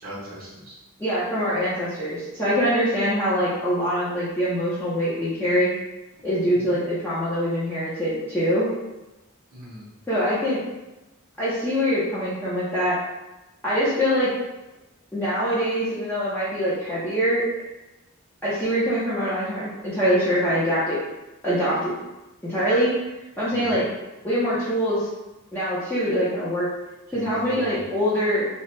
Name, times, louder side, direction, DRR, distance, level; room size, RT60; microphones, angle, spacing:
voice 1, 0.0-0.8 6.5-6.8 9.5-9.9 23.5-23.8 27.1-27.8, equal, 45° right, -7 dB, 0.9 m, -39 dB
voice 2, 1.0-5.7 6.2-8.7 10.1-10.6 11.4-13.0 13.6-14.3 15.1-17.5 18.4-20.9 21.4-21.9 22.4-22.9 23.4-23.9 24.2-25.1 25.5-26.7 27.1-28.5, equal, 10° left, -11 dB, 0.7 m, -23 dB
3.0 x 2.3 x 3.1 m, 1.0 s
head